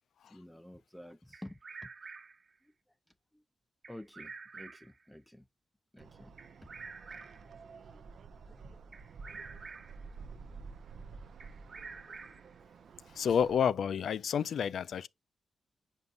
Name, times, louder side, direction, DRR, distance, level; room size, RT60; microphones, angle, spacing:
voice 1, 0.3-1.6 3.9-5.4 5.9-6.3 6.6-6.7 7.9-8.0 8.5-8.8 9.4-9.6 11.8-12.3, left 1 dB, 5° left, 0.4 m, -51 dB
Bird vocalization bird call bird song, 1.3-2.5 3.8-5.0 6.4-7.5 8.9-10.0 11.4-12.6, right 4 dB, 45° right, 1.1 m, -48 dB
sound 1, 6.0-13.6, right 4 dB, 70° right, 0.5 m, -51 dB
voice 2, 13.1-15.1, left 7 dB, 75° left, 0.4 m, -29 dB
8.1 x 5.4 x 2.4 m
cardioid pair, 85°, 0 cm